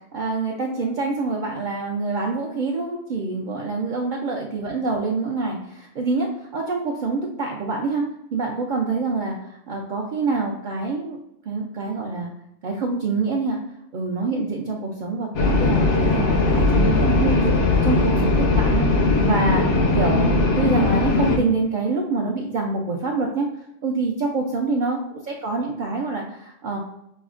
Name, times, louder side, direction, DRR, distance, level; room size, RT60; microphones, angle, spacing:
voice 1, 0.1-8.0 8.3-11.2 11.5-12.3 12.6-13.6 13.9-17.5 17.8-23.5 23.8-25.0 25.3-26.8, right 3 dB, 60° right, -2 dB, 0.5 m, -26 dB
sound 1, 15.3-21.4, left 3 dB, 90° left, 1.0 m, -19 dB
6.0 x 2.0 x 2.4 m, 0.79 s
omnidirectional pair, 1.2 m